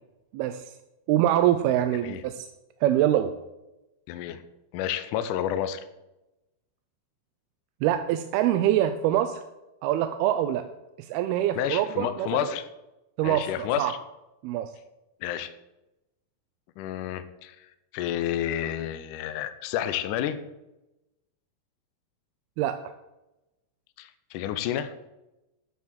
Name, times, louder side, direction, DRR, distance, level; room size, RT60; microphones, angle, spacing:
voice 1, 0.3-0.6 1.1-2.4 2.8-3.3 7.8-9.4 9.8-10.7 11.0-12.3 13.2-13.5 13.8-13.9 14.4-14.7 22.6-22.8, right 12 dB, 80° right, 9 dB, 2.5 m, -24 dB
voice 2, 4.1-4.4 4.7-5.8 11.6-12.7 13.2-14.0 15.2-15.5 16.8-20.4 24.0-24.9, left 10 dB, 85° left, 11 dB, 1.8 m, -30 dB
10.5 x 7.5 x 7.4 m, 0.97 s
omnidirectional pair, 4.5 m